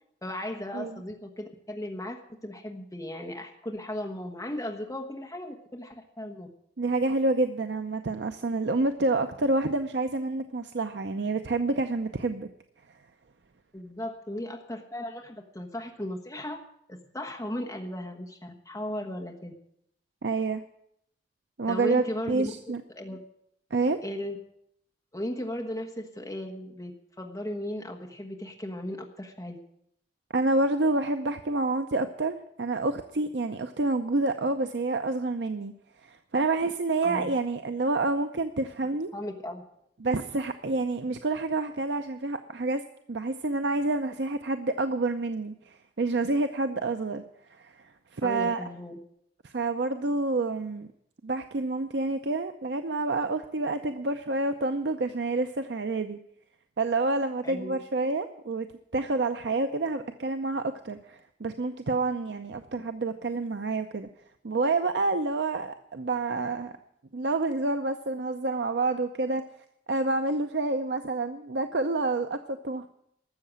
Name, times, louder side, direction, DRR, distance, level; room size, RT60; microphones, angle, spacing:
voice 1, 0.2-6.5 13.7-16.6 16.9-19.5 21.7-22.5 22.9-23.2 24.0-24.4 25.1-29.6 37.0-37.3 39.1-39.6 48.2-49.0 57.4-57.8, left 1 dB, 15° left, 2 dB, 1.2 m, -36 dB
voice 2, 6.8-12.5 20.2-20.6 21.6-22.8 23.7-24.0 30.3-35.7 36.0-39.1 40.0-42.8 43.1-47.2 47.5-48.6 49.4-50.9 51.2-56.2 56.8-58.7 58.9-64.1 64.4-66.7 67.1-69.4 69.9-72.9, right 2 dB, 75° right, 8 dB, 0.7 m, -28 dB
13.0 x 7.6 x 9.8 m, 0.74 s
head